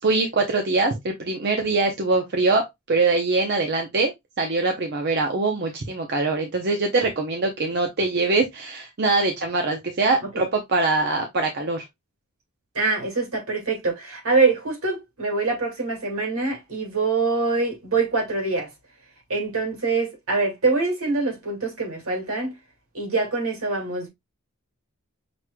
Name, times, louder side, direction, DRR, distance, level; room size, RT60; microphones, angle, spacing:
voice 1, 0.0-4.1 4.4-11.9, right 3 dB, 50° right, 0.7 m, -23 dB
voice 2, 12.7-18.7 19.3-22.5 22.9-24.1, right 3 dB, 80° right, 2.1 m, -24 dB
5.9 x 3.1 x 2.2 m
head